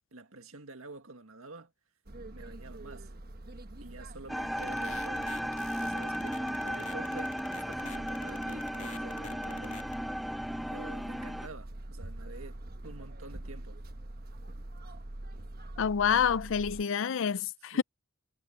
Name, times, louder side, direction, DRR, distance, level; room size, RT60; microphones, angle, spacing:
voice 1, 0.1-1.7 2.3-3.1 3.8-9.8 10.7-13.8 17.7-17.8, right 2 dB, 75° right, 2.0 m, -48 dB
sound 1, 2.1-16.8, right 1 dB, 45° right, 1.2 m, -45 dB
sound 2, 4.3-11.5, equal, ahead, 0.4 m, -35 dB
sound 3, 4.6-9.9, left 5 dB, 35° left, 3.0 m, -46 dB
voice 2, 15.8-17.8, left 7 dB, 60° left, 0.5 m, -28 dB
head